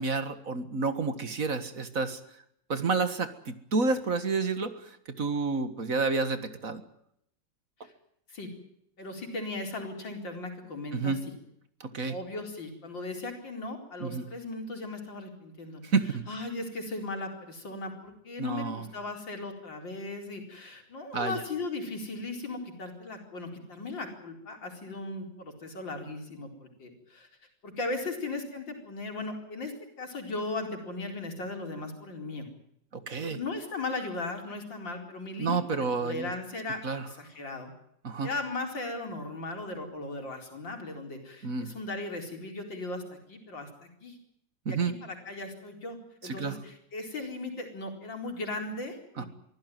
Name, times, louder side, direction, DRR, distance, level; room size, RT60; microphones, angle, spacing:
voice 1, 0.0-2.2 2.7-6.8 10.9-11.2 11.8-12.2 14.0-14.3 15.8-16.2 18.4-18.9 21.1-21.4 32.9-33.4 35.4-36.3 36.8-37.1 38.0-38.3 41.4-41.7 44.7-44.9 46.2-46.6 49.2-49.3, right 4 dB, 50° right, 11 dB, 2.0 m, -30 dB
voice 2, 9.0-11.2 12.1-15.8 16.3-27.3 27.6-32.5 33.2-36.8 37.1-37.7 38.2-44.2 44.7-46.0 46.2-49.3, left 2 dB, 90° left, 3 dB, 5.0 m, -37 dB
24.0 x 15.5 x 9.3 m, 0.75 s
omnidirectional pair, 2.0 m